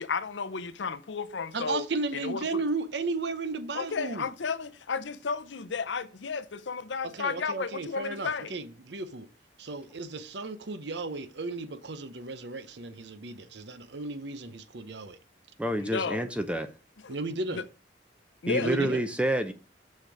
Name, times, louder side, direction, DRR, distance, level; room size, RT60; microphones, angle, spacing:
voice 1, 0.0-1.9 2.1-2.4 3.7-8.5 15.8-16.2 17.0-17.2 17.5-17.6 18.4-18.9, left 5 dB, 80° left, 0.7 m, -33 dB
voice 2, 1.5-4.3 7.0-9.3 9.6-15.2 17.1-17.6 18.6-19.0, right 3 dB, 70° right, 0.8 m, -34 dB
voice 3, 15.6-16.7 18.5-19.5, right 1 dB, 5° right, 0.6 m, -28 dB
6.6 x 6.5 x 4.8 m
head